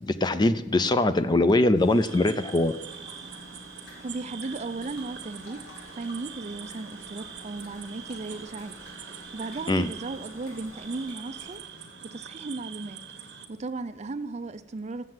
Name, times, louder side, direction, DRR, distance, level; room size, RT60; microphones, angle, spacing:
voice 1, 0.0-2.7 9.7-9.9, left 2 dB, 25° left, 0.4 m, -22 dB
sound 1, 1.7-11.1, equal, 85° left, 3.4 m, -52 dB
sound 2, 1.9-13.5, right 7 dB, 65° right, 1.2 m, -43 dB
sound 3, 2.8-11.6, equal, 65° left, 3.5 m, -51 dB
voice 2, 4.0-5.7 5.9-8.7 9.0-11.6 12.0-13.0 13.5-15.1, right 3 dB, 40° right, 0.5 m, -36 dB
7.5 x 7.4 x 7.8 m
head